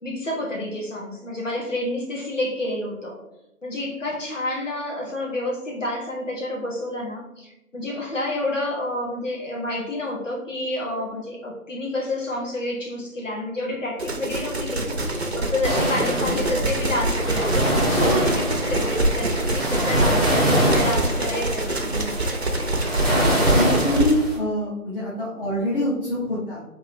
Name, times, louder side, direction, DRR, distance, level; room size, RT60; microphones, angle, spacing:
voice 1, 0.0-3.1 3.6-22.2, left 1 dB, 60° left, -2 dB, 1.7 m, -29 dB
sound 1, 14.0-24.1, right 1 dB, 50° right, 0.6 m, -25 dB
sound 2, 15.6-24.4, equal, ahead, 0.6 m, -24 dB
voice 2, 15.8-16.4 23.5-26.6, left 1 dB, 40° left, -7 dB, 1.0 m, -25 dB
3.7 x 2.9 x 4.8 m, 0.90 s
figure-of-eight pair, 165°, 43 cm